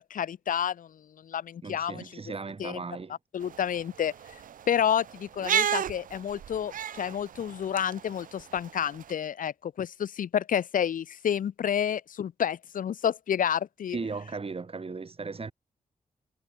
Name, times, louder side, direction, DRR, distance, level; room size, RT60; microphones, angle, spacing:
voice 1, 0.0-2.0 2.6-2.8 3.3-4.1 4.7-14.0, left 9 dB, 85° left, 4.6 m, -30 dB
voice 2, 1.6-3.2 13.9-15.5, right 4 dB, 45° right, 4.1 m, -36 dB
sound 1, 3.4-9.1, right 9 dB, 85° right, 3.9 m, -34 dB
cardioid pair, 60°, 14 cm